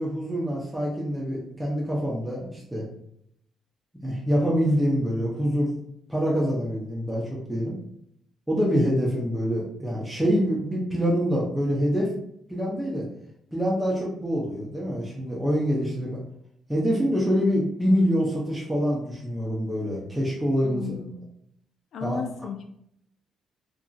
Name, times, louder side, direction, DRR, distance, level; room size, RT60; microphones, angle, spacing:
voice 1, 0.0-2.8 4.0-5.7 6.1-7.8 8.5-12.1 12.5-13.1 13.5-16.2 16.7-20.8 22.0-22.2, equal, 5° right, -5 dB, 0.7 m, -25 dB
voice 2, 20.6-21.3 21.9-22.6, left 6 dB, 70° left, 5 dB, 0.4 m, -35 dB
2.7 x 2.6 x 2.4 m, 0.73 s
cardioid pair, 90°, 0 cm